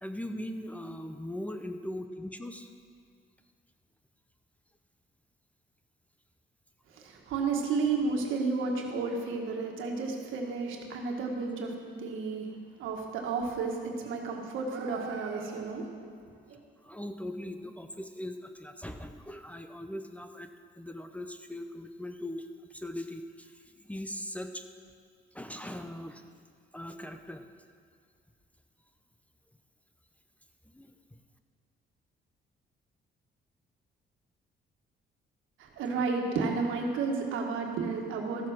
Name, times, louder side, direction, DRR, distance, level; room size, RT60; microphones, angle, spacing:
voice 1, 0.0-2.7 16.8-20.5 20.7-24.6 25.3-26.2 26.7-27.5 30.7-30.9 35.9-36.0, left 1 dB, 5° left, 7 dB, 0.7 m, -40 dB
voice 2, 6.9-12.5 12.8-15.8 16.5-16.6 35.6-38.5, right 4 dB, 85° right, 1 dB, 1.6 m, -32 dB
13.5 x 7.2 x 6.2 m, 2.2 s
cardioid pair, 90°, 20 cm